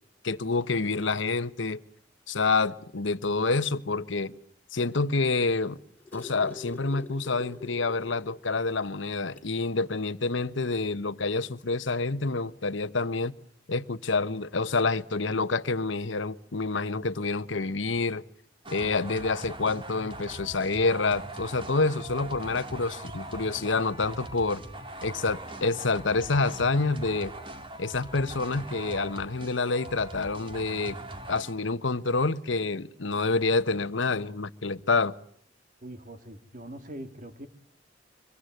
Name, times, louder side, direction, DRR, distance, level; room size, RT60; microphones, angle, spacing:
voice 1, 0.2-1.8 2.3-4.3 4.7-5.8 6.1-13.3 13.7-18.2 18.7-24.6 25.0-27.3 27.8-31.0 31.3-35.1, left 3 dB, 75° left, 1.1 m, -28 dB
sound 1, 5.8-8.5 8.8-8.9 9.3-9.6 10.7-10.8, left 4 dB, 10° left, 3.2 m, -44 dB
sound 2, 18.6-31.5, right 1 dB, 25° right, 2.1 m, -41 dB
voice 2, 35.8-37.5, right 1 dB, 45° right, 2.5 m, -42 dB
25.0 x 23.5 x 9.3 m
head